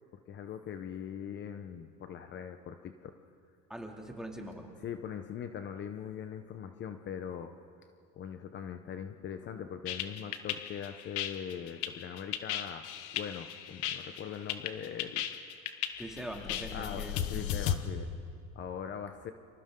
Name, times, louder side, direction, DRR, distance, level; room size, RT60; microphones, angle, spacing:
voice 1, 0.3-3.2 4.8-7.5 8.1-12.9 13.1-15.3 16.7-18.1 18.5-19.3, left 8 dB, 40° left, 8 dB, 0.9 m, -41 dB
voice 2, 3.7-4.7 16.0-17.3, right 1 dB, ahead, 1 dB, 2.6 m, -42 dB
sound 1, 9.9-17.7, left 11 dB, 75° left, 1.5 m, -35 dB
29.5 x 26.5 x 3.8 m, 2.3 s
cardioid pair, 130°, 29 cm